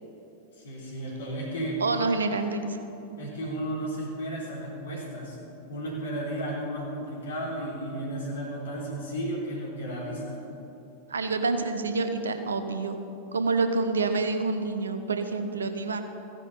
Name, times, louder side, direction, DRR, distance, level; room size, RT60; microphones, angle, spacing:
voice 1, 0.6-1.8 3.2-5.4 5.7-10.4, right 1 dB, 65° left, -3 dB, 3.8 m, -33 dB
voice 2, 1.8-2.8 11.1-13.0 13.3-16.0, right 3 dB, 70° right, 8 dB, 1.0 m, -27 dB
15.5 x 10.5 x 5.6 m, 2.9 s
figure-of-eight pair, 90°, 0 cm